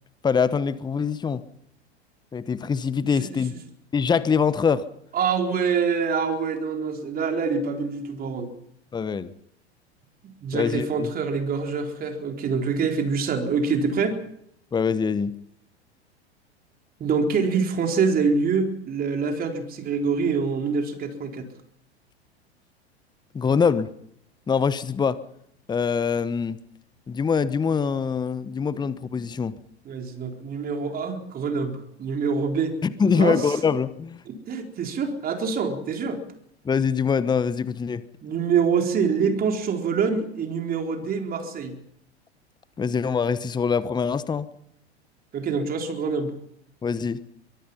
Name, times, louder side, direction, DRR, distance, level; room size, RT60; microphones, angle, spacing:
voice 1, 0.2-1.4 2.3-3.5 3.9-4.8 8.9-9.3 10.5-11.1 14.7-15.4 23.3-23.9 24.5-25.2 25.7-26.6 27.1-29.5 32.8-34.2 36.6-38.0 42.8-44.5 46.8-47.2, left 6 dB, 15° left, 16 dB, 1.1 m, -24 dB
voice 2, 5.1-8.5 10.4-14.2 17.0-21.4 28.7-28.8 29.8-32.7 33.1-33.6 34.3-36.2 38.2-41.8 45.3-46.3, right 5 dB, 25° right, 4 dB, 4.2 m, -25 dB
24.0 x 22.5 x 5.7 m, 0.73 s
figure-of-eight pair, 90°, 33 cm